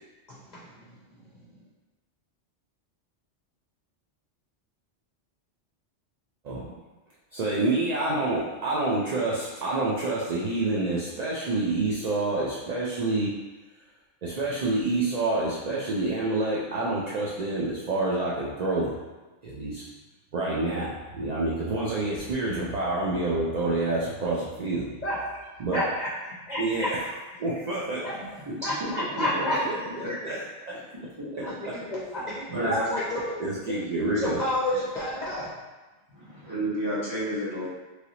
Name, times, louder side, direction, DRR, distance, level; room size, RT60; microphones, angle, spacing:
voice 1, 0.3-1.0 1.4-1.5 25.0-25.2 25.7-26.1 26.5-26.9 28.0-28.1 28.6-29.6 31.4-33.2 33.6-33.7 34.0-35.5, left 1 dB, 50° left, -7 dB, 0.6 m, -30 dB
voice 2, 7.3-13.3 14.2-18.9 19.4-19.8 20.3-24.8 25.6-25.8 26.6-26.9 27.4-28.0 30.1-30.8 31.3-31.4 32.5-32.7 33.4-34.4, right 2 dB, 70° right, -7 dB, 0.3 m, -28 dB
voice 3, 29.2-29.5 30.0-30.1 30.7-30.8 32.5-32.9 36.1-37.7, equal, 25° right, -10 dB, 1.0 m, -31 dB
3.2 x 2.6 x 2.8 m, 1.2 s
omnidirectional pair, 1.2 m